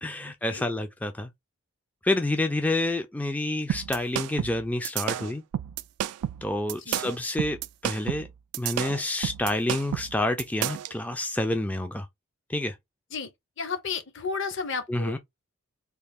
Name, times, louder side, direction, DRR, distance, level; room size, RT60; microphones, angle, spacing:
voice 1, 0.0-1.3 2.0-5.4 6.4-7.6 7.8-8.3 8.6-12.1 12.5-12.8 14.9-15.2, left 1 dB, 5° left, 0.3 m, -28 dB
sound 1, 3.7-10.9, right 11 dB, 90° right, 0.3 m, -31 dB
voice 2, 13.6-15.2, left 5 dB, 55° left, 0.7 m, -32 dB
3.3 x 2.3 x 3.5 m
head